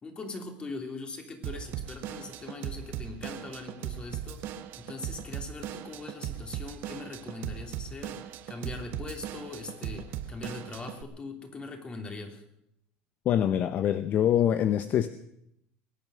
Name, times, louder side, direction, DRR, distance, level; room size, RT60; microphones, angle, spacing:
voice 1, 0.0-4.4 4.8-12.4, left 3 dB, 25° left, 4 dB, 3.1 m, -41 dB
Drum kit / Drum, 1.4-11.0, right 11 dB, 60° right, 1.2 m, -38 dB
voice 2, 13.2-15.1, left 10 dB, 45° left, 12 dB, 0.7 m, -24 dB
22.5 x 9.2 x 6.3 m, 0.77 s
supercardioid pair, 120°, 4 cm